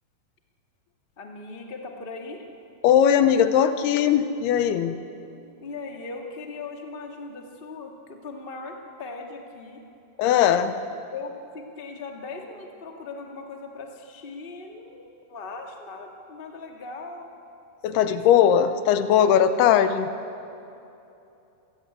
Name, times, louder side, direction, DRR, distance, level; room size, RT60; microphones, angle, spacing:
voice 1, 1.2-2.4 5.6-9.8 11.1-17.3 18.0-18.2 18.5-18.6, left 3 dB, 25° left, 2 dB, 1.3 m, -39 dB
voice 2, 2.8-5.0 10.2-10.7 17.8-20.1, left 9 dB, 85° left, 11 dB, 2.9 m, -19 dB
28.0 x 15.5 x 9.8 m, 2.8 s
omnidirectional pair, 4.6 m